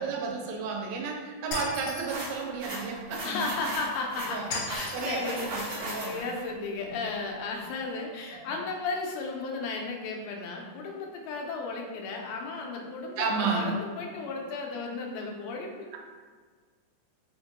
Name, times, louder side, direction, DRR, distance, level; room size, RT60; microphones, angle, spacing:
voice 1, 0.0-3.3 4.3-4.5 4.9-6.2 6.8-6.9 8.3-8.5 13.2-13.7, right 5 dB, 85° right, 1 dB, 2.4 m, -32 dB
Shatter, 1.5-2.3 4.5-5.2, left 3 dB, 55° left, 1.8 m, -36 dB
sound 1, 2.1-6.4, right 1 dB, 60° right, 1.4 m, -37 dB
voice 2, 3.2-16.0, left 3 dB, 85° left, 0 dB, 2.4 m, -34 dB
5.6 x 2.2 x 2.9 m, 1.5 s
omnidirectional pair, 4.1 m